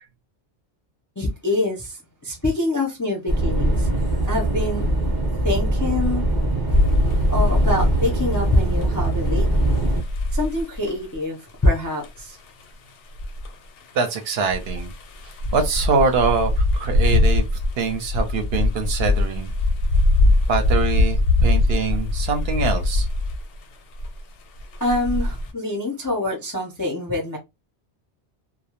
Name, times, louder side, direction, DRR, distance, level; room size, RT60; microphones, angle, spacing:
voice 1, 1.2-3.9 4.3-4.9 5.4-6.3 7.3-9.8 10.3-12.4 24.8-27.4, left 2 dB, 30° left, 0.3 m, -25 dB
sound 1, 3.3-10.0, right 1 dB, 25° right, 0.6 m, -22 dB
sound 2, 6.7-8.5 8.8-11.2 11.7-11.8 12.0-12.2 12.5-12.6 13.2-23.6 24.0-24.2 24.6-25.5, left 2 dB, 85° left, 0.9 m, -22 dB
voice 2, 13.9-14.9 15.5-17.5 17.8-19.5 20.5-23.1, right 4 dB, 65° right, 0.8 m, -23 dB
2.2 x 2.0 x 2.8 m
omnidirectional pair, 1.2 m